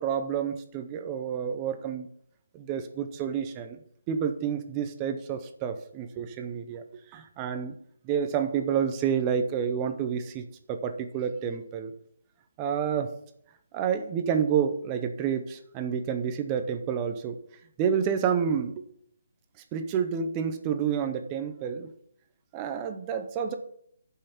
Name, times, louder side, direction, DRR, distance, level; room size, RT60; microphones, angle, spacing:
voice 1, 0.0-2.1 2.5-3.8 4.1-6.8 7.1-7.8 8.0-11.9 12.6-13.1 13.7-17.4 17.8-18.8 19.7-21.9 22.5-23.5, right 7 dB, 15° right, 8 dB, 0.6 m, -29 dB
10.5 x 5.7 x 5.7 m, 0.67 s
hypercardioid pair, 175°, 0 cm